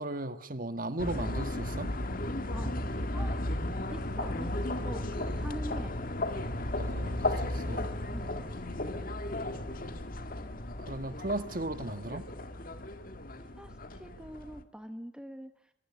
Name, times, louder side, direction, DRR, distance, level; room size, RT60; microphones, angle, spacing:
voice 1, 0.0-1.9 6.7-7.9 10.8-12.3, right 1 dB, 50° right, 1.7 m, -36 dB
sound 1, 1.0-14.6, left 1 dB, 50° left, 1.8 m, -35 dB
voice 2, 2.5-3.4 3.9-6.0 8.1-8.4 13.3-15.7, equal, 5° right, 1.1 m, -45 dB
23.0 x 22.5 x 9.9 m
head